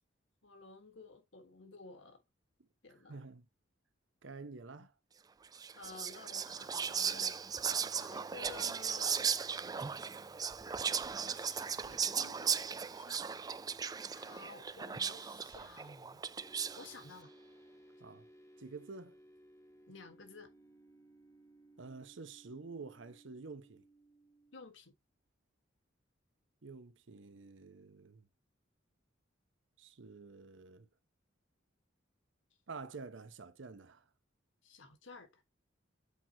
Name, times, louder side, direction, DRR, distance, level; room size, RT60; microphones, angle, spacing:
voice 1, 0.4-2.2 2.8-3.2 4.8-4.9 5.7-7.4 7.8-9.3 11.2-13.2 14.1-16.3 16.8-17.3 19.9-20.5 24.5-24.9 34.6-35.4, left 3 dB, 75° left, 1.6 m, -53 dB
voice 2, 3.1-3.5 4.2-4.9 18.0-18.3 18.6-19.2 21.8-23.8 26.6-28.2 29.8-30.9 32.7-34.0, right 4 dB, 70° right, 0.8 m, -49 dB
Whispering, 5.5-17.0, right 6 dB, 20° right, 0.3 m, -37 dB
sound 1, 16.4-24.7, right 1 dB, 15° left, 1.0 m, -61 dB
8.3 x 4.5 x 2.9 m
head